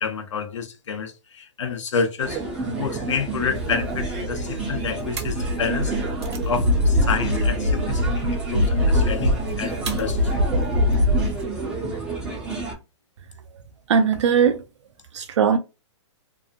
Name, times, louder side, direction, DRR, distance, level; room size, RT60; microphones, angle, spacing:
voice 1, 0.0-2.4 2.8-5.9 6.4-10.3, left 5 dB, 85° left, 0.8 m, -29 dB
sound 1, 2.2-12.7, right 3 dB, 5° right, 0.5 m, -30 dB
sound 2, 3.5-11.4, left 1 dB, 65° right, 0.9 m, -23 dB
voice 2, 13.9-14.6 15.1-15.6, right 7 dB, 80° right, 0.4 m, -19 dB
2.8 x 2.5 x 2.4 m
hypercardioid pair, 175°, 15 cm